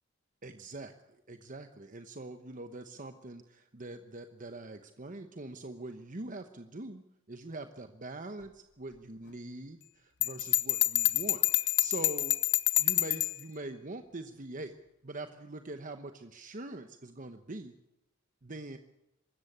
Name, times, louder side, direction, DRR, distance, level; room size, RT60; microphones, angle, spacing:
voice 1, 0.4-0.9 1.3-12.4 12.8-14.7 15.0-17.7 18.4-18.8, right 2 dB, 40° right, 8 dB, 1.0 m, -43 dB
Bell, 10.2-13.4, left 16 dB, 60° left, 0.8 m, -27 dB
24.5 x 13.5 x 8.7 m, 0.90 s
head